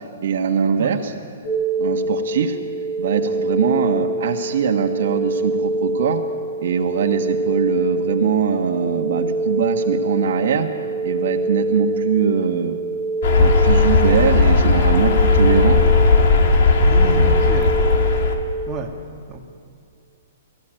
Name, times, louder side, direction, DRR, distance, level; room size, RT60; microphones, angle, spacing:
voice 1, 0.2-1.1 1.8-2.6 3.0-6.2 6.6-10.7 11.0-12.8 13.4-15.8, right 6 dB, 60° right, 4 dB, 1.7 m, -21 dB
sound 1, 1.4-18.4, right 2 dB, 65° left, 4.4 m, -25 dB
sound 2, 13.2-18.3, left 3 dB, 50° left, 2.2 m, -16 dB
voice 2, 16.8-17.8 18.7-18.9 19.3-19.4, right 4 dB, 10° right, -3 dB, 2.1 m, -30 dB
24.0 x 15.0 x 9.1 m, 2.3 s
hypercardioid pair, 165°, 0 cm